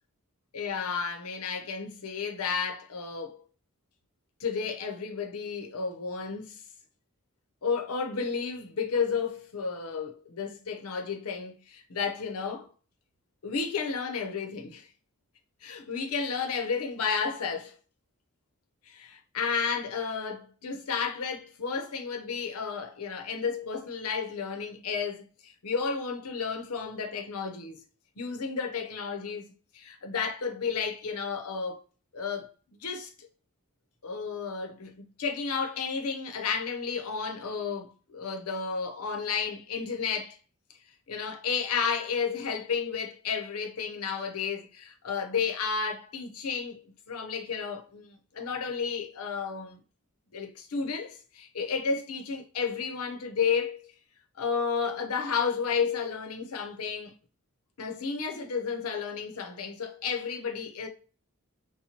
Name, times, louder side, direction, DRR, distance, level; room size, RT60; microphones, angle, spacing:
voice 1, 0.5-3.4 4.4-6.6 7.6-12.7 13.4-14.9 15.6-17.8 18.9-27.8 28.2-29.5 29.7-31.8 32.1-33.3 34.0-40.4 41.1-46.8 47.1-49.8 50.3-53.9 54.4-57.1 57.8-60.9, left 5 dB, 85° left, 0.7 m, -32 dB
4.2 x 2.2 x 2.8 m
head